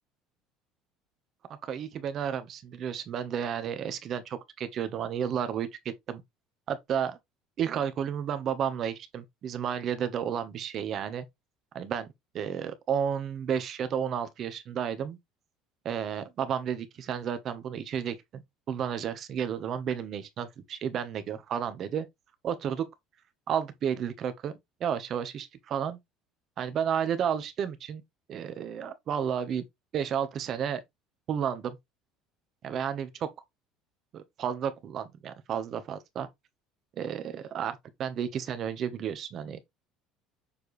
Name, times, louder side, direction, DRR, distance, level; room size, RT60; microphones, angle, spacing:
voice 1, 1.6-5.7 6.1-6.2 6.7-7.2 7.6-11.2 11.7-15.2 15.8-18.4 18.7-22.0 22.4-22.9 23.5-24.5 24.8-26.0 26.6-28.0 28.3-29.6 29.9-30.8 31.3-31.8 32.6-33.3 34.1-36.3 37.0-39.6, right 8 dB, 35° right, 1.1 m, -32 dB
7.0 x 4.5 x 3.2 m
cardioid pair, 170°, 0 cm